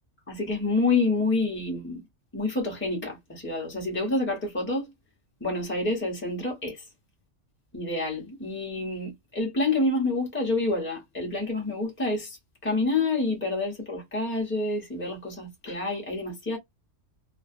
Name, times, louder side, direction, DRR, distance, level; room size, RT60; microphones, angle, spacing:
voice 1, 0.3-2.0 2.3-4.9 5.4-6.8 7.7-12.4 12.6-16.6, left 2 dB, 10° left, 0.8 m, -28 dB
2.4 x 2.1 x 2.4 m
omnidirectional pair, 1.3 m